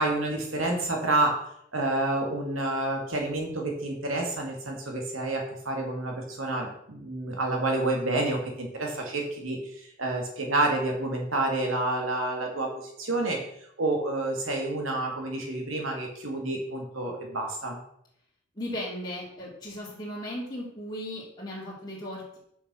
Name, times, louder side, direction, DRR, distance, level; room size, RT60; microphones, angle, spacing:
voice 1, 0.0-1.4 1.7-13.4 13.8-17.8, right 2 dB, 85° right, 1 dB, 2.4 m, -29 dB
voice 2, 18.5-22.4, left 1 dB, 20° left, -7 dB, 2.9 m, -36 dB
7.0 x 6.3 x 6.3 m, 0.73 s
head